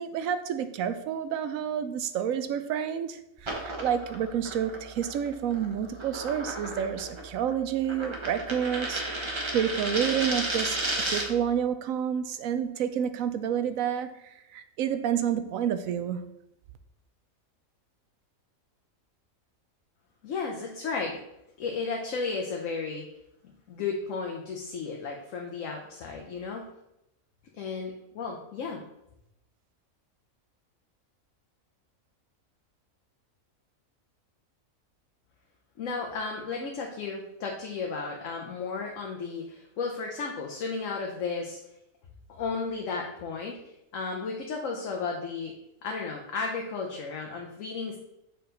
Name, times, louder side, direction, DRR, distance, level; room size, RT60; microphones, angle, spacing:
voice 1, 0.0-16.3, right 8 dB, 75° right, 10 dB, 1.0 m, -29 dB
sound 1, 3.4-11.4, right 1 dB, 25° right, 0.8 m, -34 dB
voice 2, 20.2-21.2 21.6-23.0 23.7-26.7 27.5-28.8 35.8-41.6 42.3-43.6 43.9-45.5 45.8-48.0, left 4 dB, 70° left, 0 dB, 1.1 m, -34 dB
6.4 x 4.6 x 3.8 m, 0.84 s
omnidirectional pair, 1.5 m